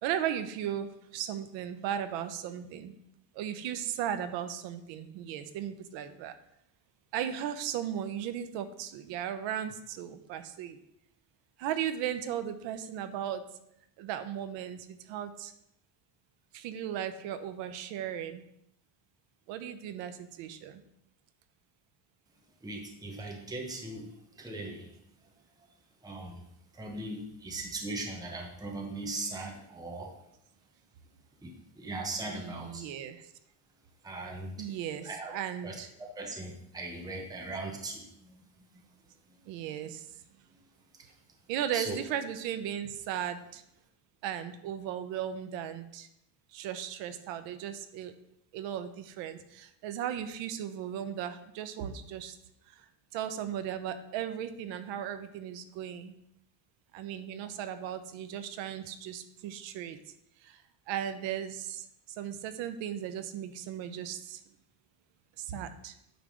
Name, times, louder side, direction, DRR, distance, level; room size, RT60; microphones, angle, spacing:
voice 1, 0.0-2.9 3.3-6.3 7.1-10.8 11.6-13.4 14.0-15.5 16.5-18.4 19.5-20.8 32.3-33.2 34.6-35.9 39.5-40.0 41.5-43.6 44.2-46.1 46.5-48.1 48.5-52.4 52.7-52.8 53.1-56.1 56.9-60.0 60.4-60.6 60.9-61.9 62.2-64.4 65.4-65.9, right 10 dB, 90° right, 10 dB, 0.8 m, -36 dB
voice 2, 22.6-24.1 24.4-24.9 26.0-26.4 26.7-30.1 31.4-32.8 34.0-34.6 35.0-35.3 35.6-38.4 41.7-42.0, right 2 dB, 10° right, 1 dB, 1.0 m, -39 dB
9.0 x 3.5 x 6.3 m, 0.77 s
cardioid pair, 140°, 43 cm